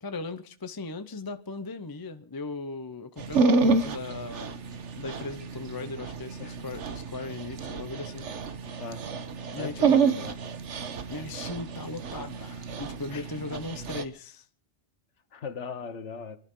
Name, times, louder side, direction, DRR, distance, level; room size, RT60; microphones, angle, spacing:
voice 1, 0.0-4.6 5.0-8.3 9.5-10.0 11.1-14.5, left 3 dB, 25° left, 0.7 m, -38 dB
Dog, 3.2-14.0, right 4 dB, 85° right, 1.4 m, -29 dB
voice 2, 9.6-10.3 13.1-13.2 15.3-16.4, left 5 dB, 85° left, 1.5 m, -38 dB
28.0 x 11.5 x 3.7 m
omnidirectional pair, 1.2 m